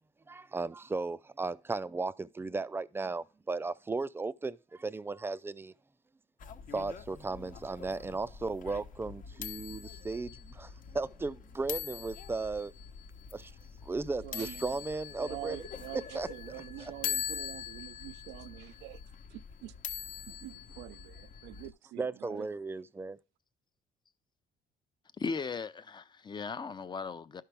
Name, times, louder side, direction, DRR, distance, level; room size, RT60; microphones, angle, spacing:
voice 1, 0.3-5.7 6.7-12.7 13.3-13.5 13.9-15.6 16.1-16.3 22.0-23.2, right 3 dB, 15° right, 0.4 m, -36 dB
sound 1, 6.4-21.7, left 8 dB, 50° left, 1.0 m, -43 dB
voice 2, 14.2-14.8 15.2-19.0 19.3-19.7 20.3-22.5, right 17 dB, 85° right, 0.4 m, -46 dB
voice 3, 25.2-27.4, left 5 dB, 25° left, 0.6 m, -37 dB
12.0 x 5.7 x 3.4 m
cardioid pair, 110°, 17 cm